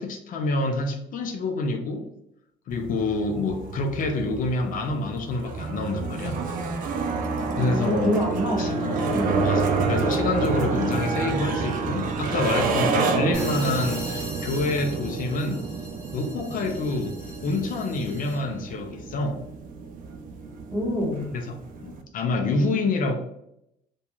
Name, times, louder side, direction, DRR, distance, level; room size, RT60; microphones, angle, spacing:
voice 1, 0.0-2.0 2.7-6.4 7.6-8.2 8.6-9.0 9.4-15.6 16.1-19.4 21.3-23.1, left 3 dB, 55° left, 4 dB, 0.4 m, -27 dB
sound 1, 2.7-22.0, right 4 dB, 55° right, 0.4 m, -29 dB
voice 2, 7.6-9.6 20.7-21.2, equal, 20° right, -2 dB, 1.0 m, -27 dB
sound 2, 13.3-18.6, right 1 dB, 5° left, 1.0 m, -41 dB
2.3 x 2.3 x 2.9 m, 0.78 s
cardioid pair, 110°, 17 cm